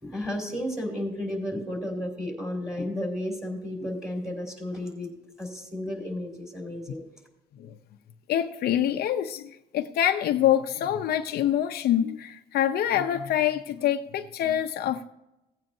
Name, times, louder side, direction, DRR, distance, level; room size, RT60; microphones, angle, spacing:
voice 1, 0.0-5.1 5.4-7.0, left 1 dB, 5° right, -1 dB, 4.8 m, -33 dB
voice 2, 8.3-15.0, left 11 dB, 65° left, 6 dB, 0.7 m, -25 dB
18.0 x 8.8 x 2.7 m, 0.90 s
cardioid pair, 110°, 17 cm